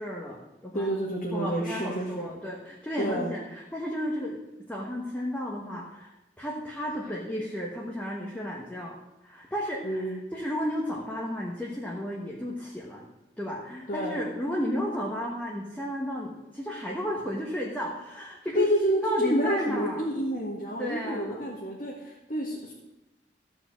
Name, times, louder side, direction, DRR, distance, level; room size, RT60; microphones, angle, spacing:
voice 1, 0.0-0.9 1.3-4.4 4.7-10.0 10.3-13.1 13.4-18.7 19.0-20.0 20.8-21.4, equal, 10° left, -3 dB, 1.3 m, -33 dB
voice 2, 0.7-2.3 3.0-3.3 7.0-7.1 9.8-10.2 13.9-14.2 18.6-22.7, equal, 45° left, -3 dB, 1.8 m, -29 dB
14.0 x 4.9 x 7.4 m, 0.98 s
head